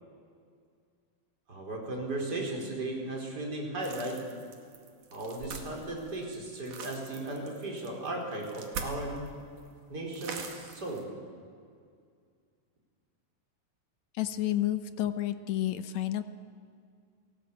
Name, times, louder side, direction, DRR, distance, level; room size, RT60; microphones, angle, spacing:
voice 1, 1.5-4.2 5.1-9.3 9.9-11.1, right 2 dB, 25° right, 0 dB, 4.9 m, -36 dB
sound 1, 3.8-9.3 9.6-9.7 10.1-11.0, right 5 dB, 60° right, 3.6 m, -42 dB
voice 2, 14.1-16.2, left 12 dB, 70° left, 11 dB, 1.8 m, -30 dB
29.5 x 18.0 x 8.6 m, 2.2 s
omnidirectional pair, 4.2 m